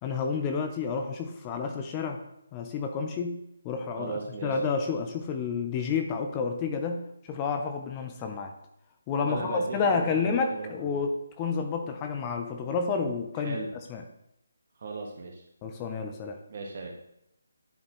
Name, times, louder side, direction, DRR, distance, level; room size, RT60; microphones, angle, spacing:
voice 1, 0.0-2.2 2.5-3.4 3.6-8.5 9.1-11.1 11.4-13.6 13.9-14.0 15.6-16.4, left 5 dB, 20° left, 4 dB, 0.6 m, -30 dB
voice 2, 4.0-4.6 9.2-11.0 13.4-13.7 14.8-15.4 16.5-17.1, right 3 dB, 50° right, 1 dB, 1.5 m, -37 dB
10.5 x 4.2 x 3.1 m, 0.79 s
figure-of-eight pair, 155°, 0 cm